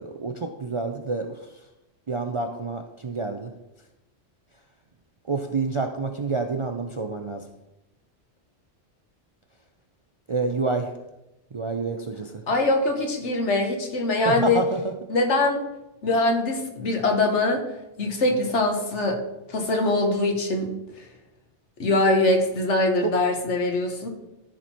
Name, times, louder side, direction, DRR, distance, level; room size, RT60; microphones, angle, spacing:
voice 1, 0.0-1.4 2.1-3.5 5.3-7.5 10.3-10.9 11.5-12.4 14.3-14.9 23.0-23.1, right 3 dB, 45° right, 4 dB, 0.4 m, -28 dB
voice 2, 12.5-14.6 15.1-15.6 16.0-17.6 18.0-19.2 19.5-20.7 21.0-21.1 21.8-24.1, left 2 dB, 75° left, 3 dB, 1.6 m, -23 dB
13.0 x 4.5 x 4.3 m, 0.94 s
omnidirectional pair, 1.2 m